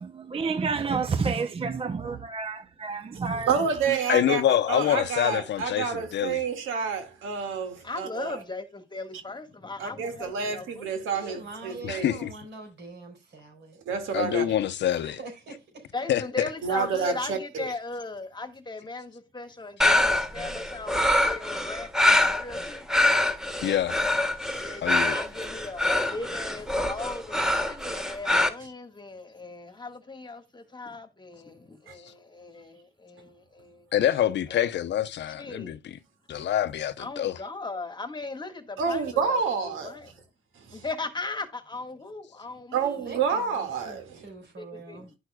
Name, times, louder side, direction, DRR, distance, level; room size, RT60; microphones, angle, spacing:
voice 1, 0.0-3.6, right 5 dB, 30° right, 0.6 m, -29 dB
voice 2, 3.5-4.4 4.7-8.4 9.8-12.2 13.9-14.5 16.6-17.7 24.5-24.6 31.9-32.0 36.3-36.4 38.8-40.0 40.6-40.8 42.7-44.2, right 6 dB, 85° right, 2.0 m, -29 dB
voice 3, 4.1-6.4 11.8-12.3 14.1-15.2 16.1-16.5 23.6-24.0 24.8-25.2 33.9-35.9 36.3-37.4, left 11 dB, 65° left, 0.7 m, -26 dB
voice 4, 7.8-11.4 11.7-11.9 15.9-23.1 24.6-33.9 34.5-34.7 35.3-35.8 37.0-40.1 40.7-43.2 44.6-45.1, left 3 dB, 20° left, 1.5 m, -38 dB
voice 5, 11.1-13.8 14.9-15.9 43.0-45.1, right 2 dB, 60° right, 4.6 m, -44 dB
sound 1, 19.8-28.5, left 1 dB, 5° right, 1.4 m, -24 dB
11.0 x 6.1 x 2.2 m
cardioid pair, 90°, 20 cm